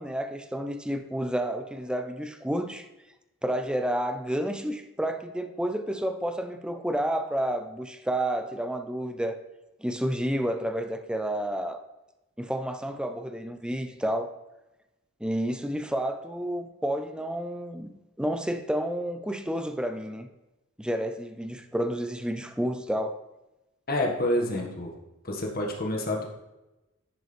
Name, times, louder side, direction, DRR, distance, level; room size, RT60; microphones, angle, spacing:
voice 1, 0.0-2.9 3.4-9.4 9.8-11.8 12.4-14.3 15.2-17.9 18.2-20.3 20.8-23.2, right 1 dB, 5° right, 7 dB, 0.6 m, -30 dB
voice 2, 23.9-24.9 25.2-26.3, left 1 dB, 45° left, 0 dB, 1.7 m, -28 dB
10.5 x 6.6 x 3.4 m, 0.99 s
head